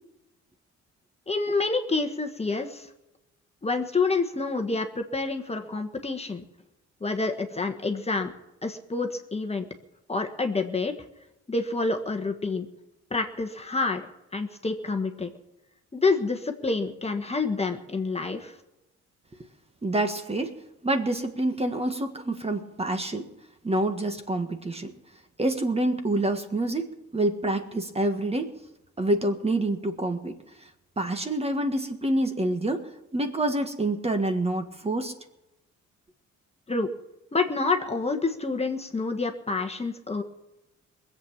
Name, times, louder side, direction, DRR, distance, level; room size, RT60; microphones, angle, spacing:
voice 1, 1.3-2.9 3.6-6.4 7.0-8.3 8.6-9.7 10.1-10.9 11.5-12.7 13.1-14.1 14.3-15.3 15.9-18.5 36.7-36.9 37.3-40.2, left 3 dB, 20° left, 5 dB, 1.4 m, -28 dB
voice 2, 19.8-20.6 20.8-23.3 23.6-24.9 25.4-28.6 29.0-30.4 31.0-32.9 33.1-35.1, right 1 dB, 20° right, 6 dB, 1.5 m, -27 dB
20.5 x 8.1 x 7.3 m, 0.92 s
cardioid pair, 90°, 30 cm